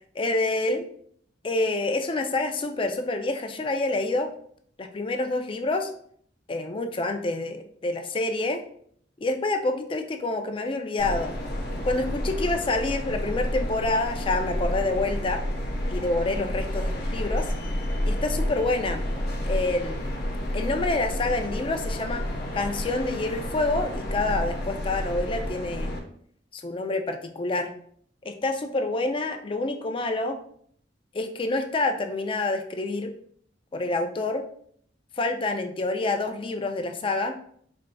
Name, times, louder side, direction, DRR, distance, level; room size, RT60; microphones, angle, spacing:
voice 1, 0.1-0.9 1.4-4.3 4.8-5.9 6.5-8.6 9.2-11.4 11.8-15.4 15.9-17.5 18.0-19.0 19.4-20.0 20.5-22.2 22.5-26.0 26.5-27.7 28.2-30.4 31.1-33.1 33.7-34.4 35.2-37.4, left 2 dB, 30° left, 6 dB, 0.4 m, -27 dB
sound 1, 11.0-26.0, left 1 dB, 60° left, 0.9 m, -30 dB
4.4 x 3.8 x 2.2 m, 0.62 s
head